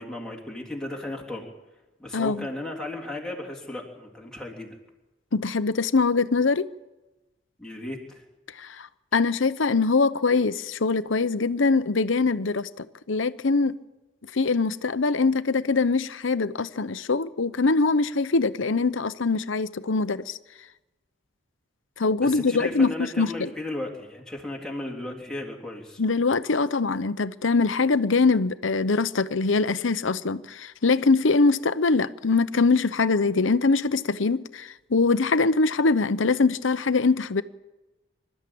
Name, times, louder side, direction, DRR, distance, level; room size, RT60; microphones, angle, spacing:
voice 1, 0.0-1.5 2.0-4.7 7.6-8.2 22.2-26.0, left 2 dB, 5° left, 3.1 m, -35 dB
voice 2, 2.1-2.5 5.3-6.7 8.6-8.9 9.1-13.8 14.3-20.4 22.0-23.5 26.0-37.4, left 4 dB, 80° left, 0.8 m, -23 dB
26.0 x 13.0 x 8.6 m
head